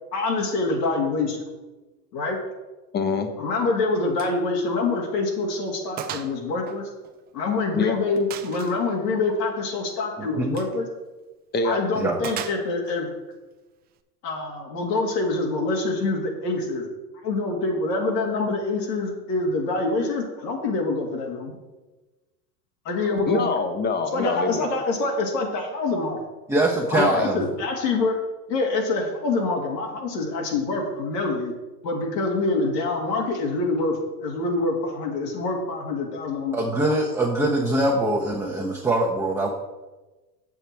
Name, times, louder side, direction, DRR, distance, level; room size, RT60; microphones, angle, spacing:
voice 1, 0.1-1.4 2.1-2.4 3.4-6.8 7.3-10.9 11.6-13.1 14.2-16.9 17.2-21.6 22.9-23.5 24.1-26.2 26.9-28.2 28.5-31.5 31.8-36.9, left 3 dB, 80° left, 1 dB, 2.2 m, -26 dB
voice 2, 2.9-3.3 7.7-8.0 11.5-11.8 23.3-24.7 27.0-27.3, left 4 dB, 20° left, 8 dB, 0.9 m, -24 dB
Gunshot gunfire, 4.2-4.4 4.7-4.8 5.3-5.4 6.0-6.4 6.7-7.6 8.3-8.8 10.5-10.8 12.2-13.0, right 10 dB, 20° right, 0.4 m, -36 dB
voice 3, 10.2-10.6 11.9-12.2 26.5-27.4 36.5-39.5, right 1 dB, 5° right, -4 dB, 0.9 m, -23 dB
7.2 x 7.1 x 4.5 m, 1.2 s
hypercardioid pair, 105°, 49 cm